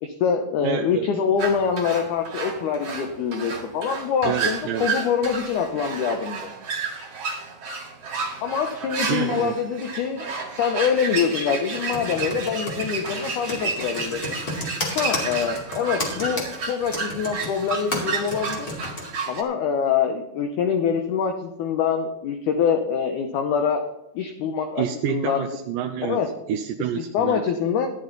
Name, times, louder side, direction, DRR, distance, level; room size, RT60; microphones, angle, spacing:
voice 1, 0.0-6.5 8.4-10.3 10.6-14.4 15.0-18.7 19.3-23.8 24.2-25.5 26.0-26.3 27.1-27.9, left 7 dB, 70° left, 5 dB, 2.0 m, -25 dB
voice 2, 0.6-1.1 4.2-4.9 9.1-9.6 24.8-26.2 26.5-27.4, right 10 dB, 80° right, 6 dB, 2.1 m, -28 dB
sound 1, 1.4-19.4, right 4 dB, 50° right, 2.7 m, -31 dB
Computer keyboard, 11.7-19.0, left 2 dB, 30° left, 2.5 m, -31 dB
13.0 x 10.5 x 3.9 m, 0.85 s
omnidirectional pair, 4.2 m